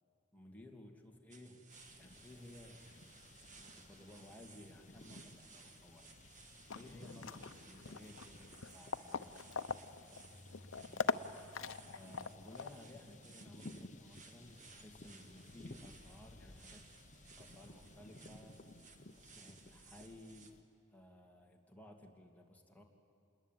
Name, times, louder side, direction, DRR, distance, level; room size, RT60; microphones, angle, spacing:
voice 1, 0.3-1.7 1.9-2.9 3.6-6.1 6.4-10.2 10.8-11.1 11.9-17.0 17.3-18.6 19.1-20.5 20.9-22.8, left 1 dB, 10° left, 1 dB, 2.5 m, -57 dB
sound 1, 1.3-20.5, right 5 dB, 40° right, 1.8 m, -61 dB
sound 2, 1.7-20.6, left 2 dB, 40° left, 1.0 m, -57 dB
sound 3, 6.7-12.8, left 5 dB, 85° left, 0.8 m, -42 dB
28.5 x 21.5 x 9.2 m, 2.9 s
head